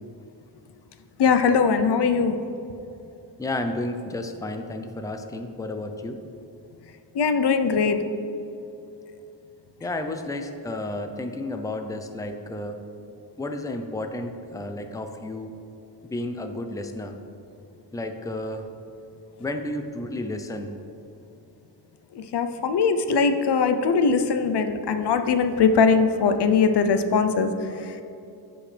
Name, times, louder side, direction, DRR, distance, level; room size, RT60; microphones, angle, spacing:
voice 1, 1.2-2.4 7.1-8.0 22.1-28.0, left 5 dB, 75° left, 8 dB, 0.7 m, -21 dB
voice 2, 3.4-6.2 9.8-12.8 13.4-15.5 16.0-17.1 17.9-18.7 19.4-20.7, left 1 dB, 10° left, 6 dB, 0.5 m, -32 dB
14.5 x 5.2 x 3.3 m, 2.8 s
wide cardioid pair, 110°, 41 cm